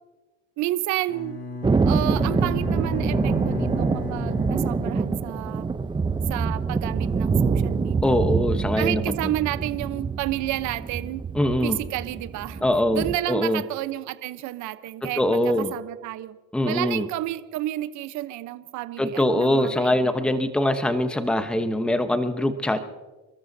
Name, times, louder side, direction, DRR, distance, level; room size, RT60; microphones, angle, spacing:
voice 1, 0.6-1.4 1.9-5.7 6.3-8.2 8.8-11.2 11.6-12.6 12.9-16.4 16.6-20.3, right 15 dB, 60° right, 13 dB, 1.0 m, -31 dB
Bowed string instrument, 1.1-5.8, left 3 dB, 45° left, 3.9 m, -34 dB
Thunder, 1.6-13.2, right 4 dB, 15° right, 0.6 m, -25 dB
voice 2, 8.0-9.3 11.3-11.8 12.6-13.6 15.0-15.7 16.5-17.1 19.0-22.8, left 1 dB, 5° left, 8 dB, 1.0 m, -23 dB
29.0 x 13.5 x 2.8 m, 1.2 s
supercardioid pair, 100°, 32 cm